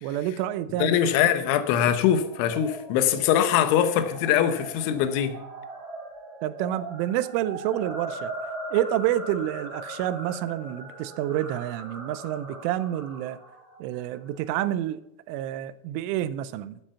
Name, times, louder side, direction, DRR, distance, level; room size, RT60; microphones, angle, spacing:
voice 1, 0.0-1.0 6.4-8.3 8.7-13.4 13.8-16.8, right 12 dB, 90° right, 3.2 m, -28 dB
voice 2, 0.8-5.3, left 9 dB, 80° left, 3.4 m, -22 dB
sound 1, 2.0-14.5, right 2 dB, 30° right, 4.5 m, -40 dB
13.5 x 9.7 x 5.6 m
omnidirectional pair, 5.5 m